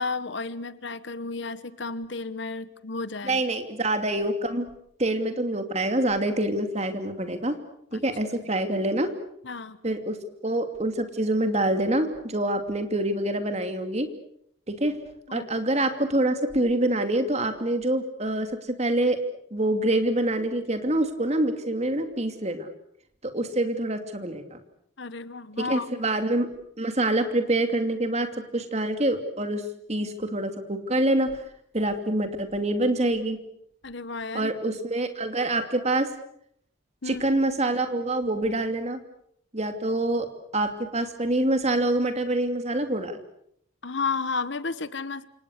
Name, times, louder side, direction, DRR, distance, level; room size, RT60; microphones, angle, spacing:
voice 1, 0.0-3.4 7.9-8.0 9.4-9.8 15.3-15.5 25.0-25.9 33.8-34.5 37.0-37.2 43.8-45.3, left 4 dB, 60° left, 15 dB, 1.1 m, -32 dB
voice 2, 3.2-4.7 5.0-7.6 7.9-9.1 9.8-10.2 10.4-14.1 14.7-15.0 15.3-19.2 19.5-22.7 23.2-24.6 25.6-26.5 26.8-28.3 28.5-29.6 29.9-31.4 31.7-33.4 34.3-36.1 37.1-39.0 39.5-40.3 40.5-43.2, right 1 dB, 30° right, 7 dB, 2.7 m, -26 dB
28.5 x 27.0 x 6.6 m, 0.71 s
head